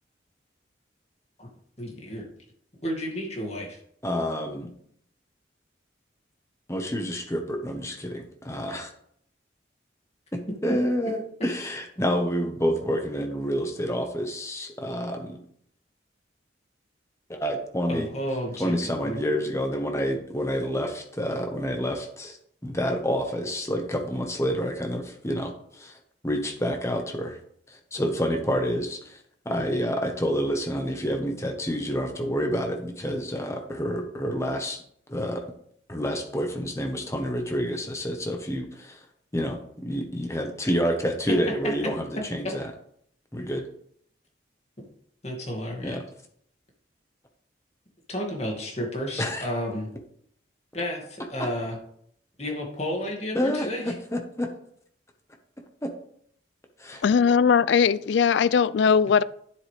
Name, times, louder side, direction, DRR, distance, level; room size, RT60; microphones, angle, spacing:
voice 1, 1.8-2.3 2.8-3.8 17.9-19.2 41.3-41.4 41.6-41.7 42.4-42.5 45.2-46.0 48.1-49.9 50.7-51.8 52.4-53.9, equal, 35° left, 2.2 m, -32 dB
voice 2, 4.0-4.7 6.7-8.9 10.3-15.4 17.3-18.1 18.6-22.4 22.6-26.0 26.2-27.4 27.7-29.2 29.4-34.8 35.1-35.4 35.9-39.0 39.3-42.7 43.3-43.6 45.8-46.0 49.2-49.5 53.3-54.5 55.8-55.9 56.8-57.0, equal, 15° left, 1.2 m, -28 dB
voice 3, 57.0-59.2, left 6 dB, 70° left, 0.3 m, -19 dB
9.8 x 8.0 x 3.4 m
head